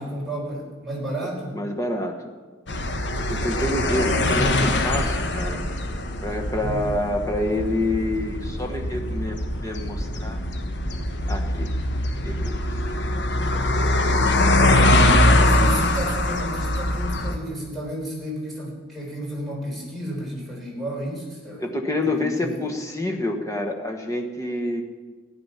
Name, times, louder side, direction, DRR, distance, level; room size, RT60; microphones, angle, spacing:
voice 1, 0.0-1.6 6.6-6.9 15.3-21.6 22.0-22.6, right 1 dB, ahead, -4 dB, 3.9 m, -32 dB
voice 2, 1.5-2.2 3.3-5.6 6.2-10.4 11.3-11.7 12.2-12.8 14.8-15.9 21.6-24.8, left 1 dB, 15° left, 2 dB, 1.3 m, -28 dB
sound 1, 2.7-17.4, left 1 dB, 60° left, 1.1 m, -22 dB
15.0 x 9.9 x 5.8 m, 1.4 s
head